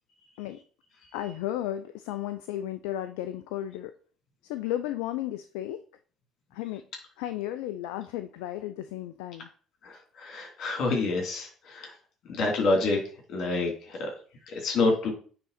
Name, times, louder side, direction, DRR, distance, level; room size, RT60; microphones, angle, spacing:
voice 1, 1.1-3.9 4.4-5.8 6.5-6.8 7.2-9.5, left 13 dB, 80° left, 10 dB, 0.4 m, -34 dB
voice 2, 9.8-11.9 12.2-13.0 13.3-14.1 14.5-15.1, left 3 dB, 60° left, 1 dB, 3.1 m, -27 dB
8.7 x 3.8 x 4.2 m, 0.43 s
hypercardioid pair, 65°, 0 cm